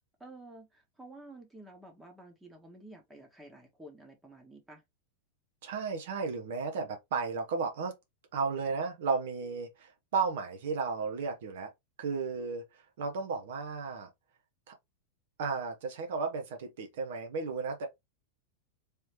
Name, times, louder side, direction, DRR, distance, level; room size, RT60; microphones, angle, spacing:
voice 1, 0.2-4.8, right 1 dB, 10° right, 1.2 m, -51 dB
voice 2, 5.6-7.9 8.3-11.7 12.0-14.1 14.7-14.8 15.4-17.9, right 4 dB, 55° right, 0.9 m, -34 dB
3.3 x 3.1 x 2.9 m
figure-of-eight pair, 90°, 0 cm